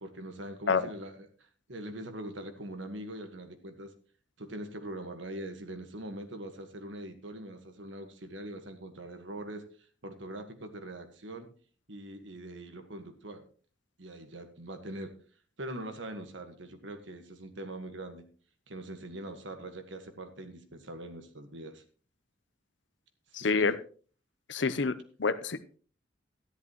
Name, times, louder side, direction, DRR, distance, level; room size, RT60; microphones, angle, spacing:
voice 1, 0.0-1.3 1.7-3.9 4.4-9.6 10.0-11.5 11.9-13.4 14.0-15.1 15.6-18.2 18.7-21.8 23.3-23.7, right 1 dB, 85° right, 7 dB, 1.6 m, -42 dB
voice 2, 23.3-23.8 24.5-25.8, left 4 dB, 75° left, 14 dB, 0.7 m, -28 dB
13.0 x 11.0 x 3.1 m, 0.41 s
head